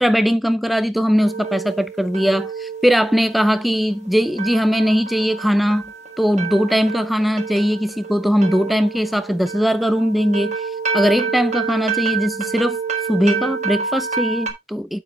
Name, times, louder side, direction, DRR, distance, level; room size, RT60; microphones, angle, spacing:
voice 1, 0.0-5.8 6.2-10.6 10.9-12.8 13.1-15.0, equal, ahead, 0.5 m, -19 dB
sound 1, 1.2-14.5, right 5 dB, 35° right, 1.4 m, -28 dB
9.2 x 7.4 x 2.4 m
head